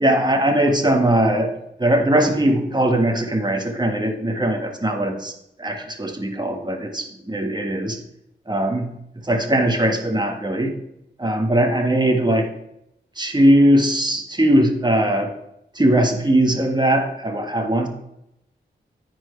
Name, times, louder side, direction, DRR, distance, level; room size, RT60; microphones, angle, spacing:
voice 1, 0.0-1.5 1.8-5.3 5.6-8.0 8.5-8.9 9.2-10.7 11.2-12.5 13.2-15.3 15.7-17.9, right 1 dB, 20° right, 3 dB, 1.6 m, -20 dB
14.0 x 4.6 x 3.3 m, 0.80 s
cardioid pair, 45°, 20 cm